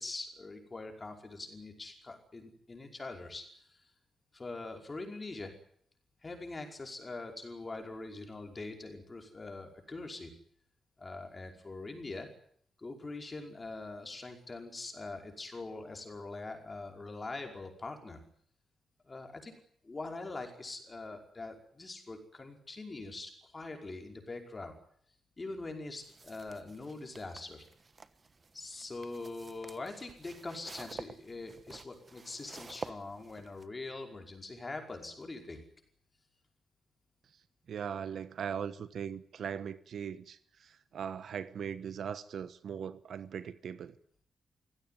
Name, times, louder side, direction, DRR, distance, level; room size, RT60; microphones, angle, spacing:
voice 1, 0.0-3.8 4.3-5.5 6.2-10.3 11.0-12.3 12.8-18.2 19.0-19.6 19.8-24.8 25.4-27.7 28.5-35.6, left 3 dB, 20° left, 5.2 m, -43 dB
sound 1, 26.0-33.6, right 4 dB, 25° right, 1.2 m, -50 dB
voice 2, 37.7-43.9, right 8 dB, 60° right, 1.2 m, -39 dB
25.0 x 16.5 x 9.3 m
wide cardioid pair, 150°, 0 cm